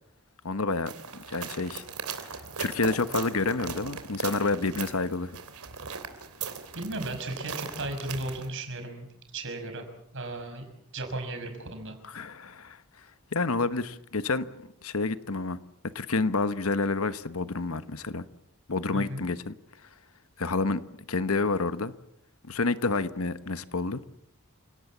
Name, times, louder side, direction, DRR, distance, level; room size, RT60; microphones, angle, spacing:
voice 1, 0.4-0.9 1.3-1.8 2.6-5.3 12.0-12.8 13.3-14.5 14.8-15.6 15.9-18.2 18.7-19.5 20.4-20.8 21.1-21.9 22.5-24.0, left 3 dB, 70° left, 1.2 m, -28 dB
sound 1, 0.9-8.5, right 5 dB, 85° right, 3.2 m, -38 dB
voice 2, 6.4-9.1 9.3-9.8 10.1-10.7 10.9-12.0 18.9-19.2, right 2 dB, 60° right, 5.7 m, -35 dB
29.0 x 18.0 x 7.3 m
head